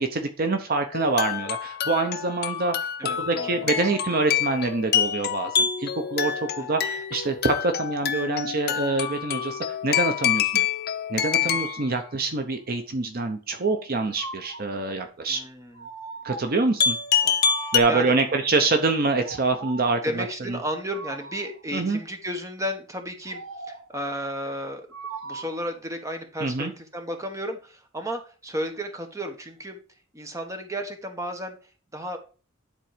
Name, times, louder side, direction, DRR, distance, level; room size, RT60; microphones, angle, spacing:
voice 1, 0.0-2.9 3.2-10.7 11.1-15.4 16.2-17.0 17.7-20.6 21.7-22.0 26.4-26.7, right 3 dB, 50° right, 6 dB, 0.8 m, -25 dB
sound 1, 0.9-11.9 16.8-17.8, left 8 dB, 55° left, 0.7 m, -26 dB
voice 2, 3.0-3.7 6.6-6.7 11.4-11.6 15.3-15.9 17.2-18.2 20.0-24.9 25.2-29.8 30.1-31.6 31.9-32.2, equal, 15° right, 5 dB, 1.3 m, -33 dB
sound 2, 13.9-14.8 15.7-16.7 17.4-18.3 19.2-20.0 20.9-21.6 23.2-24.0 24.9-25.7, right 4 dB, 85° right, 1.2 m, -39 dB
10.5 x 4.1 x 5.0 m, 0.36 s
head